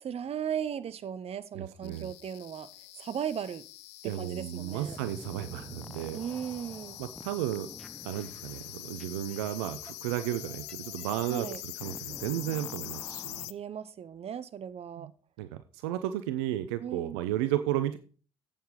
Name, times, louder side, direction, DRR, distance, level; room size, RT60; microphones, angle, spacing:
voice 1, 0.0-2.7 3.0-3.6 4.0-5.0 6.1-7.0 11.3-11.6 13.3-15.1 16.8-17.2, right 8 dB, 45° right, 0.9 m, -37 dB
voice 2, 1.5-2.1 4.0-6.2 7.0-7.7 8.0-13.4 15.0-15.1 15.4-18.0, right 13 dB, 75° right, 0.6 m, -33 dB
sound 1, 1.8-13.5, left 18 dB, 75° left, 0.4 m, -44 dB
sound 2, 4.9-13.5, equal, 5° left, 0.7 m, -49 dB
8.9 x 8.0 x 4.9 m
hypercardioid pair, 50°, 14 cm